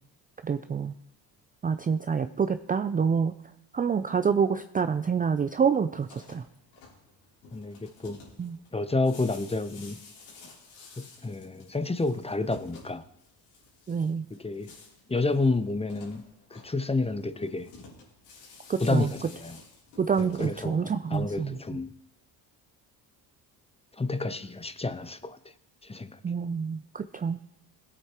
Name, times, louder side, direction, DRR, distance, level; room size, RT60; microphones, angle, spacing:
voice 1, 0.4-0.9 1.6-3.4 3.7-6.4 8.4-8.6 13.9-14.3 18.7-19.1 20.0-21.8 26.2-27.4, right 6 dB, 20° right, 9 dB, 0.4 m, -27 dB
sound 1, 6.0-21.6, left 4 dB, 90° left, 3.4 m, -52 dB
voice 2, 7.5-8.2 8.7-10.0 11.0-13.0 14.4-14.7 15.1-16.2 16.5-17.7 18.8-19.6 20.2-21.9 24.0-25.4 25.8-26.2, left 3 dB, 15° left, 13 dB, 0.8 m, -30 dB
19.0 x 8.2 x 3.0 m, 0.83 s
hypercardioid pair, 60°, 48 cm